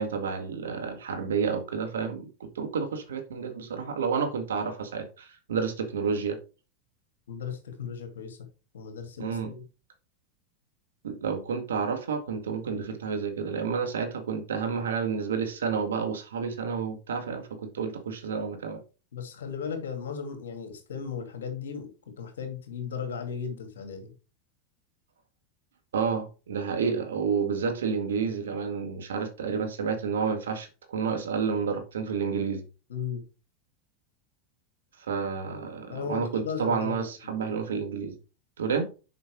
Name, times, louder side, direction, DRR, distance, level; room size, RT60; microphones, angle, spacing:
voice 1, 0.0-6.4 9.2-9.5 11.0-18.8 25.9-32.6 35.1-38.2 38.6-38.9, right 6 dB, 85° right, 7 dB, 1.8 m, -30 dB
voice 2, 7.3-8.4 8.7-9.6 19.1-21.9 22.2-24.1 32.9-33.2 35.9-37.3, left 6 dB, 80° left, 6 dB, 2.2 m, -36 dB
6.8 x 5.5 x 4.6 m, 0.32 s
hypercardioid pair, 100°, 0 cm